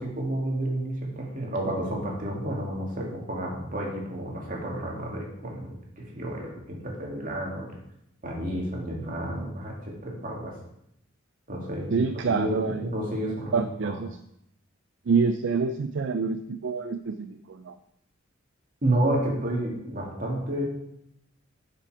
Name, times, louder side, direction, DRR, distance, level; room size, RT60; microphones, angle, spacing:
voice 1, 0.0-7.7 8.2-10.6 11.5-12.0 12.3-13.5 13.8-14.0 18.8-20.6, right 1 dB, 40° right, -2 dB, 2.3 m, -30 dB
voice 2, 11.9-12.8 13.2-14.1 15.1-17.7, right 5 dB, 60° right, 9 dB, 0.4 m, -27 dB
8.4 x 5.7 x 4.9 m, 0.77 s
head